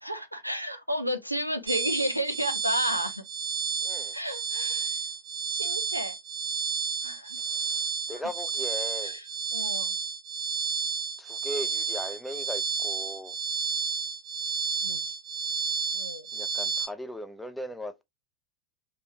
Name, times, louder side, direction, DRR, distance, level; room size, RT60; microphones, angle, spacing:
voice 1, 0.0-3.2 4.1-5.0 5.5-6.1 7.0-7.4 9.0-9.3 9.5-9.9 14.8-15.1 15.9-16.3, right 1 dB, 90° right, 0.5 m, -32 dB
sound 1, 1.7-16.9, right 6 dB, 35° right, 0.7 m, -31 dB
voice 2, 3.8-4.2 7.5-9.2 11.2-13.4 16.3-18.0, equal, ahead, 0.5 m, -38 dB
3.4 x 3.4 x 2.8 m
figure-of-eight pair, 90°, 0 cm